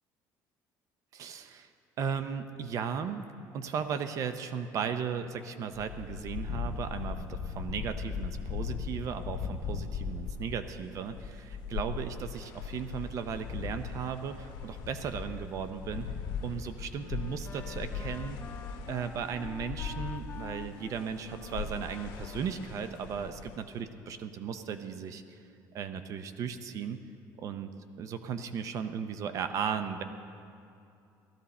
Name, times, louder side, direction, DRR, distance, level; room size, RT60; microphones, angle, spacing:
voice 1, 1.1-1.7 2.0-16.1 16.4-18.4 18.9-25.4 25.7-27.0 27.4-27.7 28.0-30.0, right 7 dB, 45° right, 9 dB, 0.6 m, -36 dB
sound 1, 5.7-20.8 21.1-23.5, left 6 dB, 70° left, 0.8 m, -39 dB
sound 2, 12.3-23.8, left 7 dB, 85° left, 1.3 m, -57 dB
Wind instrument woodwind instrument, 16.9-23.6, left 6 dB, 25° left, 0.5 m, -49 dB
17.0 x 14.0 x 4.2 m, 2.5 s
cardioid pair, 155°, 7 cm